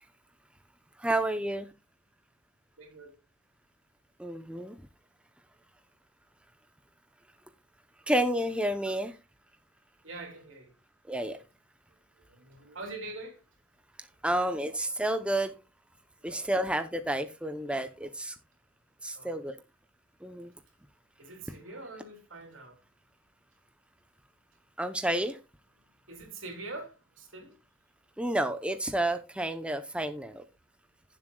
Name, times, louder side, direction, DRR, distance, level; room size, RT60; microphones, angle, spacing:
voice 1, 1.0-1.7 4.2-4.8 8.1-9.1 11.1-11.4 14.2-15.5 16.2-18.3 19.0-19.5 20.2-20.5 24.8-25.4 28.2-30.4, right 1 dB, 5° right, 0.7 m, -30 dB
voice 2, 2.8-3.1 8.9-9.0 10.0-10.7 12.2-13.4 16.2-16.5 19.1-19.4 21.2-22.8 26.1-27.5, right 2 dB, 75° right, 3.5 m, -44 dB
16.0 x 7.5 x 2.3 m
head